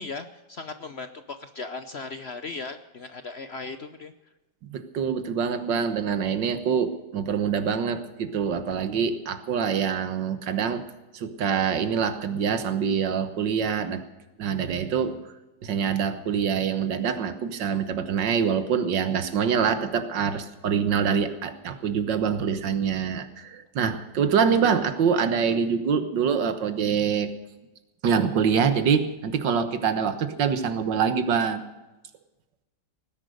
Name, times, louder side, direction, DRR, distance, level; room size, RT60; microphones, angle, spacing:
voice 1, 0.0-4.1, left 4 dB, 50° left, 9 dB, 0.8 m, -37 dB
voice 2, 4.7-10.8 11.1-14.0 14.4-15.2 15.6-27.3 28.0-31.6, right 7 dB, 85° right, 10 dB, 1.9 m, -25 dB
18.0 x 10.5 x 6.6 m, 1.1 s
omnidirectional pair, 1.9 m